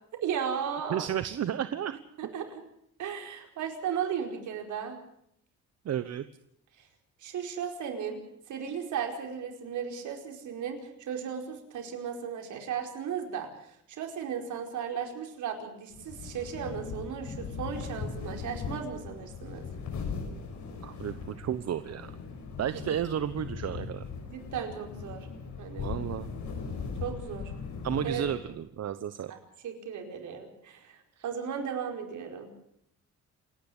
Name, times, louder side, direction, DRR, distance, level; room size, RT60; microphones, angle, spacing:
voice 1, 0.1-1.1 2.2-2.6 3.0-5.0 6.8-6.9 7.2-8.2 8.5-19.6 22.7-22.8 24.3-25.3 25.6-25.9 27.0-27.5 28.0-28.2 29.3-29.4 29.6-32.5, right 7 dB, 75° right, 3 dB, 4.8 m, -36 dB
voice 2, 0.9-2.0 5.8-6.2 20.8-22.1 22.6-24.0 25.8-26.3 27.8-29.3, right 9 dB, 55° right, 12 dB, 1.1 m, -32 dB
sound 1, 15.9-28.7, left 5 dB, 75° left, 5.7 m, -39 dB
28.0 x 10.5 x 9.9 m, 0.73 s
cardioid pair, 90°, 30 cm